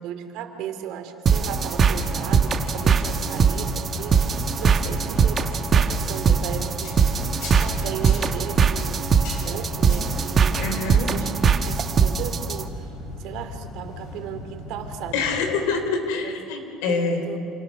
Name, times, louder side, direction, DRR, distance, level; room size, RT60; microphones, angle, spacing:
voice 1, 0.0-7.0 7.6-11.3 11.6-12.9 13.2-15.2 16.2-16.4 16.9-17.4, right 9 dB, 65° right, 7 dB, 2.5 m, -36 dB
sound 1, 1.3-12.6, right 6 dB, 25° right, 1.3 m, -21 dB
sound 2, 1.9-15.5, left 2 dB, 60° left, 7.2 m, -37 dB
voice 2, 10.6-11.1 15.1-17.3, left 4 dB, 85° left, 6 dB, 4.4 m, -26 dB
28.5 x 28.5 x 6.6 m, 2.8 s
cardioid pair, 155°, 0 cm